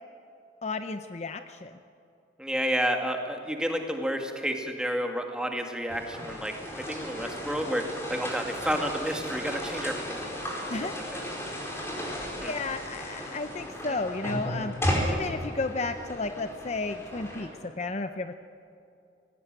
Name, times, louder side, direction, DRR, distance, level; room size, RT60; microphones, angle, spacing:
voice 1, 0.6-1.8 10.7-10.9 11.7-14.8 15.0-18.3, left 3 dB, 35° left, 8 dB, 0.6 m, -33 dB
voice 2, 2.4-10.2 10.6-10.7 11.1-11.2 12.4-12.5 13.9-14.0, equal, 5° right, 3 dB, 2.0 m, -30 dB
sound 1, 5.9-17.5, equal, 15° left, 4.6 m, -34 dB
19.5 x 18.5 x 9.1 m, 2.7 s
head